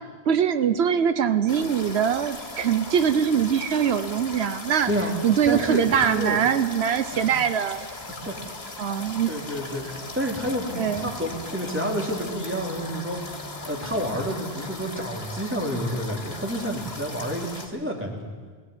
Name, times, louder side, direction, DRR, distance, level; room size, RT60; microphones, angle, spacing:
voice 1, 0.3-4.9 5.2-7.9 8.8-9.3 10.8-11.1, right 8 dB, 85° right, 12 dB, 1.1 m, -23 dB
sound 1, 1.5-17.7, left 2 dB, 75° left, 2.7 m, -38 dB
voice 2, 5.4-6.4 7.1-7.4 8.3-8.4 8.9-18.3, equal, 10° right, 0 dB, 3.2 m, -29 dB
sound 2, 9.5-16.4, left 2 dB, 40° right, 3.4 m, -44 dB
18.5 x 18.0 x 9.6 m, 1.5 s
omnidirectional pair, 1.1 m